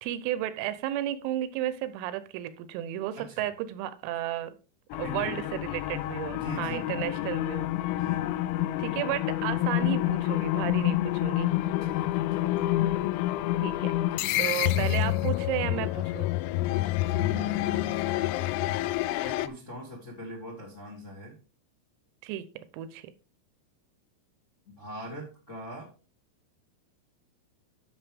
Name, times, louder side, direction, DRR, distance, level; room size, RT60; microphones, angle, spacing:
voice 1, 0.0-4.6 5.0-7.7 8.8-11.5 13.6-14.0 14.4-16.3 22.2-23.1, right 12 dB, 85° right, 13 dB, 3.4 m, -33 dB
sound 1, 4.9-19.5, left 15 dB, 85° left, 3.2 m, -28 dB
voice 2, 5.0-5.4 6.3-7.4 7.8-8.8 11.9-12.7 14.1-14.9 17.1-18.0 19.2-21.3 24.7-25.9, equal, 40° left, 0 dB, 1.1 m, -42 dB
11.0 x 6.5 x 3.5 m, 0.34 s
omnidirectional pair, 6.0 m